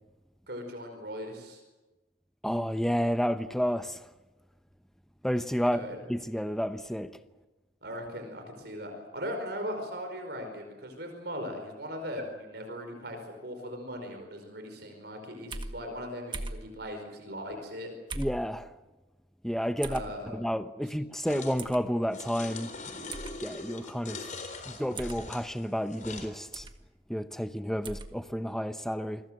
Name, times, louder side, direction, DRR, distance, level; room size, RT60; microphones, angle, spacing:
voice 1, 0.5-1.6 5.6-6.0 7.8-17.9 19.9-20.5, equal, 60° right, 5.1 m, -39 dB
voice 2, 2.4-4.0 5.2-5.8 6.1-7.2 18.2-18.7 19.4-20.0 20.3-23.1 23.4-24.3 24.7-26.7 27.1-29.2, equal, ahead, 0.8 m, -31 dB
sound 1, 15.5-15.7 16.3-16.6 18.1-18.4 19.8-20.1 21.6-21.8 23.1-23.3 24.9-25.2 26.5-26.8 27.8-28.1, right 2 dB, 25° right, 1.8 m, -38 dB
sound 2, 21.3-21.6 22.1-26.3, left 3 dB, 40° left, 4.1 m, -42 dB
28.5 x 22.5 x 7.7 m
head